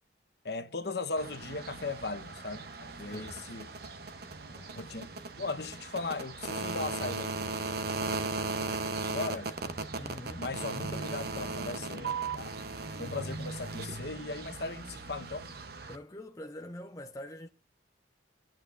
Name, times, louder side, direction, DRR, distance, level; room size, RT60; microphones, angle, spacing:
voice 1, 0.4-3.7 4.7-5.1 5.4-7.3 9.1-9.5 10.4-12.5 13.0-15.5, left 3 dB, 55° left, 1.0 m, -37 dB
sound 1, 1.2-16.0, right 3 dB, 55° right, 0.8 m, -37 dB
voice 2, 3.1-3.4 4.5-4.9 10.0-10.5 15.9-17.5, left 1 dB, 20° left, 0.5 m, -45 dB
25.0 x 8.9 x 2.5 m
head